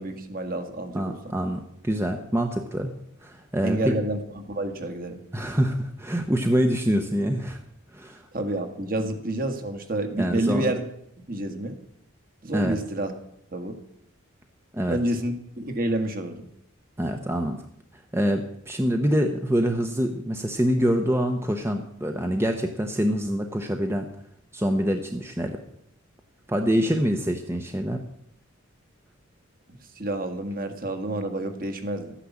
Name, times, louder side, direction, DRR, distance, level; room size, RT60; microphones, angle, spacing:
voice 1, 0.0-1.4 3.6-5.2 8.3-10.8 11.3-11.8 12.4-13.1 13.5-13.8 14.9-16.4 29.7-32.1, right 1 dB, 40° right, 6 dB, 1.6 m, -29 dB
voice 2, 0.9-2.9 3.2-4.0 5.3-7.6 7.9-8.3 10.2-10.7 12.5-12.8 14.7-15.0 17.0-17.6 17.9-24.1 24.5-25.6 26.5-28.0, equal, 10° right, 5 dB, 0.8 m, -25 dB
13.5 x 10.0 x 7.2 m, 0.74 s
head